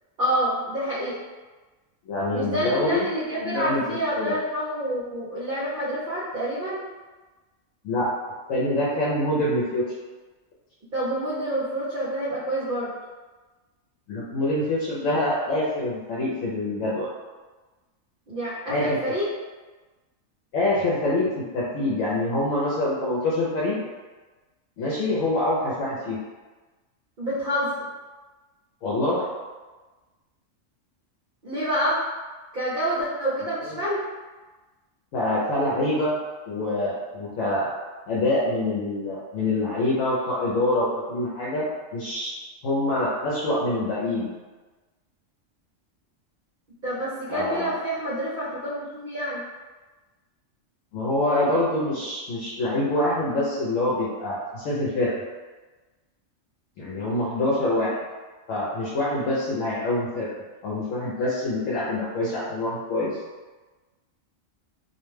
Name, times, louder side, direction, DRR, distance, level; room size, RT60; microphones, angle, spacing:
voice 1, 0.2-1.1 2.3-6.8 10.9-12.9 18.3-19.3 27.2-27.9 31.4-32.0 32.5-34.0 46.8-49.4 57.6-57.9, equal, 50° right, -9 dB, 0.7 m, -27 dB
voice 2, 2.1-3.1 3.3-4.3 7.8-8.1 8.5-9.8 14.1-17.1 18.7-19.0 20.5-21.3 21.5-23.8 24.8-26.2 28.8-29.3 33.7-33.8 35.1-36.1 36.5-37.7 38.1-41.6 41.9-44.3 47.3-47.7 50.9-55.1 56.8-57.9 58.5-60.3 60.6-63.2, left 1 dB, 80° left, -7 dB, 0.9 m, -25 dB
2.4 x 2.1 x 3.1 m, 1.3 s
omnidirectional pair, 1.3 m